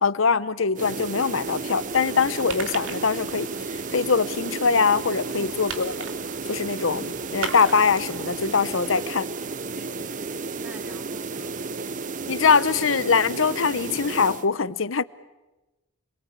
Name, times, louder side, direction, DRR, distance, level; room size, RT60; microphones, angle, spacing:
voice 1, 0.0-3.5 3.9-5.9 6.5-9.3 12.3-15.0, left 5 dB, 75° left, 0.8 m, -22 dB
sound 1, 0.7-14.5, right 4 dB, 40° right, 0.8 m, -33 dB
sound 2, 1.4-9.1, right 5 dB, 75° right, 2.9 m, -40 dB
voice 2, 5.4-5.8 8.8-9.1 9.7-11.6, right 1 dB, 5° right, 3.4 m, -48 dB
28.5 x 23.0 x 8.4 m
head